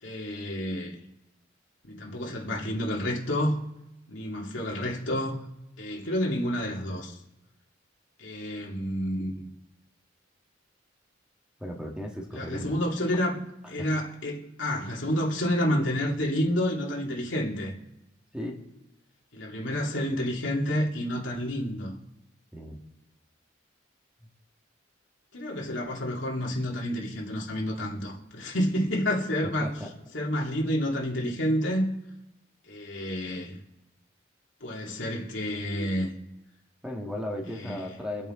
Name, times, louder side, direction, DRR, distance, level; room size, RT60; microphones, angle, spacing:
voice 1, 0.0-1.0 1.8-3.6 4.1-5.4 5.8-7.2 8.2-9.5 12.3-13.4 13.7-17.7 19.3-21.9 25.3-29.7 30.1-31.9 32.7-33.6 34.6-36.1 37.5-37.8, equal, 75° left, -2 dB, 2.5 m, -29 dB
voice 2, 11.6-12.8 13.8-14.0 18.3-18.6 22.5-22.8 29.6-29.9 36.8-38.3, left 1 dB, 5° right, 0 dB, 1.8 m, -36 dB
25.0 x 8.7 x 3.8 m, 0.92 s
head